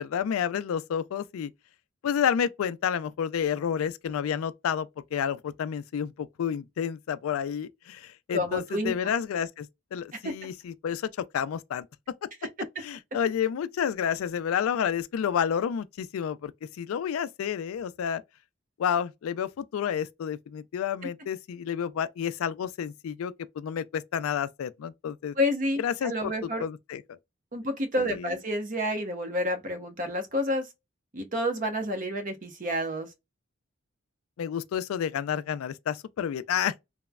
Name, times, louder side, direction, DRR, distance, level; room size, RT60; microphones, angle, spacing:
voice 1, 0.0-1.5 2.0-11.9 12.8-16.5 16.8-18.2 18.8-25.3 25.8-26.3 26.6-27.0 28.0-28.3 34.4-36.7, left 8 dB, 90° left, 0.3 m, -30 dB
voice 2, 8.3-8.9 10.1-10.3 25.4-26.6 27.5-30.7 31.1-33.1, left 1 dB, 40° right, 0.7 m, -29 dB
3.0 x 2.0 x 2.3 m
head